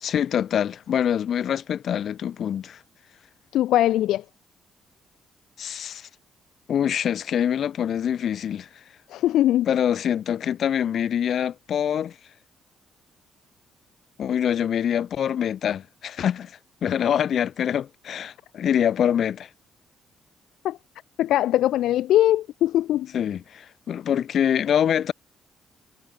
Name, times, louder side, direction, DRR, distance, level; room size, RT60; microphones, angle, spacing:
voice 1, 0.0-2.8 5.6-6.1 6.7-8.7 9.7-12.2 14.2-19.5 23.1-25.1, left 9 dB, 65° left, 2.1 m, -25 dB
voice 2, 3.5-4.2 9.1-9.7 20.6-20.8 21.2-23.1, left 13 dB, 80° left, 0.5 m, -21 dB
cardioid pair, 90°, 0 cm